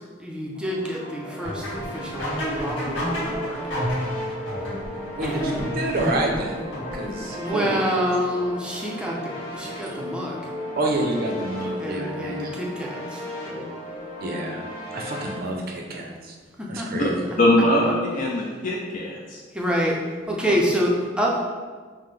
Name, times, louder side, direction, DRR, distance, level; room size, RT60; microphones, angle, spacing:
voice 1, 0.0-3.6 5.2-5.5 7.3-10.5 11.6-13.7 16.6-16.9 19.5-20.0 20.3-21.4, equal, 5° right, -3 dB, 0.5 m, -27 dB
sound 1, 0.5-15.3, left 1 dB, 25° left, 1.5 m, -36 dB
sound 2, 1.4-7.4, equal, 70° left, 1.3 m, -30 dB
voice 2, 5.2-6.6 6.9-7.8 10.8-12.6 14.2-14.7 14.9-16.4 16.7-17.2, right 1 dB, 50° right, 1 dB, 0.6 m, -28 dB
voice 3, 17.4-19.4 20.4-20.5, left 1 dB, 45° left, -3 dB, 0.5 m, -22 dB
5.6 x 2.1 x 3.2 m, 1.5 s
head